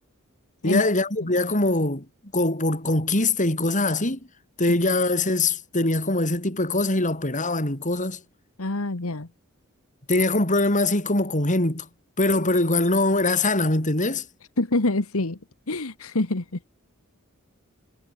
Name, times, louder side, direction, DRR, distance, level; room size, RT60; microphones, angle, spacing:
voice 1, 0.6-2.1 2.3-4.2 4.6-8.2 10.1-11.9 12.2-14.3, left 2 dB, 35° left, 5.3 m, -22 dB
voice 2, 8.6-9.3 14.6-15.4 15.7-16.7, left 2 dB, 70° left, 1.6 m, -26 dB
head